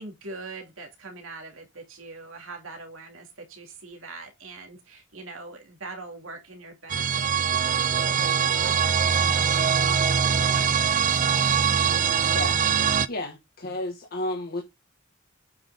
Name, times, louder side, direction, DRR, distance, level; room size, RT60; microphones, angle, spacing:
voice 1, 0.0-11.3, right 3 dB, 90° right, 2.6 m, -43 dB
sound 1, 6.9-13.1, right 7 dB, 40° right, 0.6 m, -22 dB
voice 2, 13.1-14.6, left 1 dB, 50° left, 1.9 m, -32 dB
8.8 x 5.9 x 3.7 m
head